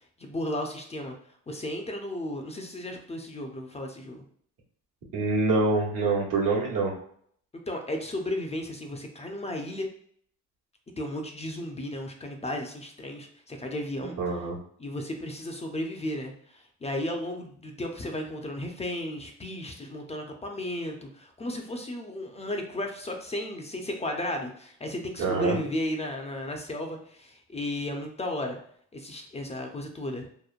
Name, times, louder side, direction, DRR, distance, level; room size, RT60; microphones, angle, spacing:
voice 1, 0.2-1.1 1.5-4.2 7.7-9.9 11.0-14.2 14.8-28.6 28.9-30.3, left 1 dB, 20° left, 2 dB, 0.4 m, -34 dB
voice 2, 5.1-6.9 14.0-14.6 25.2-25.6, right 3 dB, 75° right, -2 dB, 1.0 m, -25 dB
3.0 x 2.1 x 2.4 m, 0.62 s
cardioid pair, 80°, 32 cm